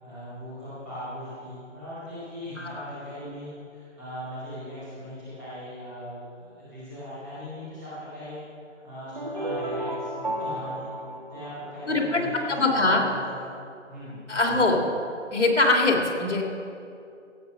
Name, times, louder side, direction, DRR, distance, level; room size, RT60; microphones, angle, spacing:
voice 1, 0.0-8.4 8.8-10.9 11.3-13.5 13.9-14.2, equal, 5° right, -15 dB, 2.1 m, -39 dB
sound 1, 9.1-12.2, right 1 dB, 35° right, 0.9 m, -33 dB
voice 2, 11.9-12.2 12.6-13.0 14.3-14.8 15.3-16.4, left 2 dB, 65° left, 1 dB, 3.1 m, -22 dB
16.5 x 8.6 x 6.4 m, 2.5 s
hypercardioid pair, 180°, 38 cm